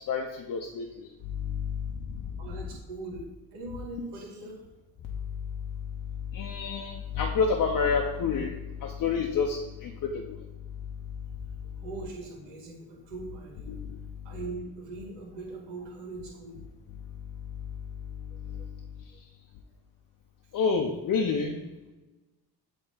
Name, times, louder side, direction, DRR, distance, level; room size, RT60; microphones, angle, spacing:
voice 1, 0.1-0.9 1.5-1.7 6.3-8.5 8.8-10.4 13.7-13.8 20.5-21.5, left 5 dB, 50° left, 1 dB, 0.8 m, -28 dB
voice 2, 2.4-3.2 3.5-4.6 11.8-13.8 14.2-16.6 18.3-18.7 19.1-19.2, right 3 dB, 80° right, -1 dB, 2.0 m, -41 dB
7.8 x 3.2 x 4.0 m, 1.1 s
supercardioid pair, 75°, 42 cm